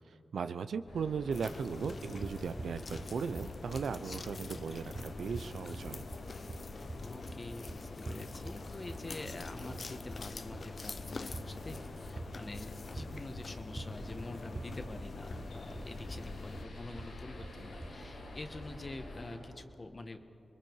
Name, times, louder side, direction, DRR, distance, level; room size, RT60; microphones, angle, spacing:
voice 1, 0.3-6.0, right 6 dB, 80° right, 11 dB, 0.6 m, -37 dB
sound 1, 0.9-19.4, left 1 dB, 85° left, 6.7 m, -48 dB
sound 2, 1.3-16.7, left 4 dB, 55° left, 0.4 m, -46 dB
sound 3, 1.8-18.8, right 2 dB, 40° right, 1.3 m, -46 dB
voice 2, 7.0-20.2, left 2 dB, 40° left, 7 dB, 1.5 m, -46 dB
27.5 x 21.5 x 4.7 m, 2.9 s
cardioid pair, 60°, 0 cm